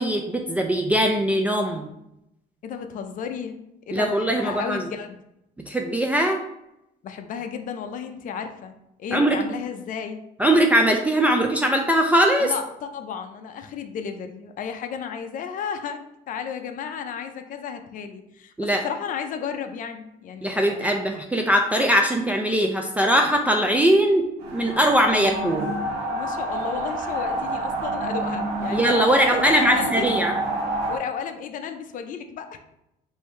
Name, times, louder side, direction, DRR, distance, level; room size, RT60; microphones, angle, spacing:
voice 1, 0.0-1.9 3.9-4.9 5.6-6.4 9.1-9.4 10.4-12.5 18.6-18.8 20.4-24.2 24.5-25.8 28.7-30.3, right 1 dB, 10° right, 1 dB, 0.4 m, -21 dB
voice 2, 2.6-3.6 3.9-5.2 7.0-10.2 12.4-21.0 26.1-30.1 30.9-32.6, left 7 dB, 50° left, 6 dB, 0.5 m, -33 dB
sound 1, 24.4-31.0, right 2 dB, 85° right, 0.7 m, -28 dB
3.3 x 2.7 x 4.4 m, 0.84 s
cardioid pair, 110°, 17 cm